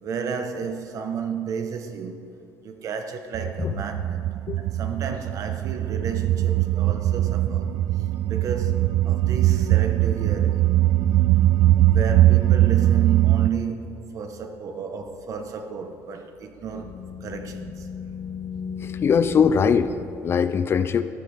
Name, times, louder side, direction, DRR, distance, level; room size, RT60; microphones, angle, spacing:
voice 1, 0.0-2.2 2.6-4.3 4.6-7.7 8.3-10.8 11.8-17.9, right 6 dB, 50° right, 1.1 m, -32 dB
sound 1, 3.3-13.5, right 14 dB, 70° right, 0.4 m, -21 dB
sound 2, 16.4-20.1, left 6 dB, 60° left, 1.5 m, -36 dB
voice 2, 18.8-19.9 20.2-21.0, left 6 dB, 35° left, 0.4 m, -21 dB
14.0 x 13.5 x 3.5 m
cardioid pair, 140°, 7 cm